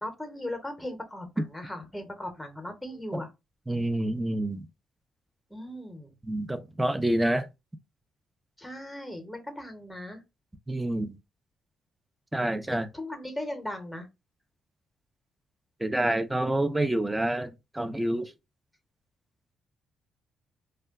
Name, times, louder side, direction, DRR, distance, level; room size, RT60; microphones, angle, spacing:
voice 1, 0.0-3.3 5.5-6.2 8.6-10.2 12.7-14.1, left 1 dB, 5° left, 0.8 m, -38 dB
voice 2, 3.7-4.7 6.2-7.5 10.7-11.2 12.3-12.9 15.8-18.3, right 1 dB, 10° right, 0.4 m, -28 dB
2.2 x 2.1 x 3.5 m
cardioid pair, 90°, 0 cm